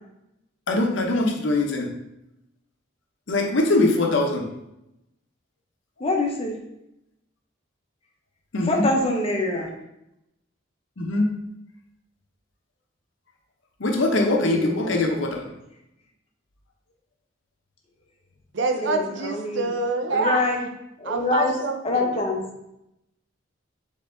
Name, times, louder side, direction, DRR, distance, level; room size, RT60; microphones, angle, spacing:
voice 1, 0.7-1.9 3.3-4.4 8.5-8.8 11.0-11.3 13.8-15.5, left 2 dB, 70° left, 3 dB, 0.7 m, -22 dB
voice 2, 6.0-6.5 8.6-9.7 14.1-14.9 18.8-19.7 20.1-20.7 21.0-21.5 21.8-22.4, left 2 dB, 30° left, 0 dB, 0.7 m, -25 dB
voice 3, 18.5-20.5 21.0-22.2, right 3 dB, 60° right, 5 dB, 0.5 m, -26 dB
4.5 x 3.0 x 3.7 m, 0.85 s
head